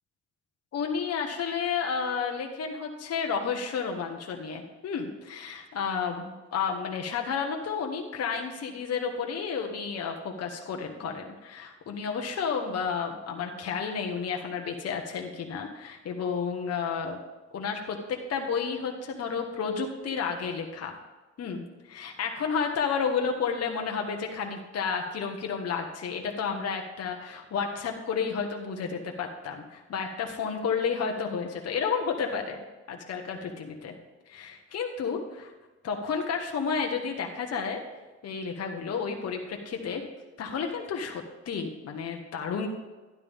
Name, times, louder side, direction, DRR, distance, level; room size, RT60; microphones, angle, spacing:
voice 1, 0.7-17.2 17.5-18.0 18.3-21.0 21.4-33.9 34.3-35.5 35.8-37.8 38.2-40.0 40.4-42.7, left 6 dB, 55° left, 2 dB, 1.3 m, -31 dB
12.0 x 10.5 x 3.6 m, 1.2 s
cardioid pair, 90°, 30 cm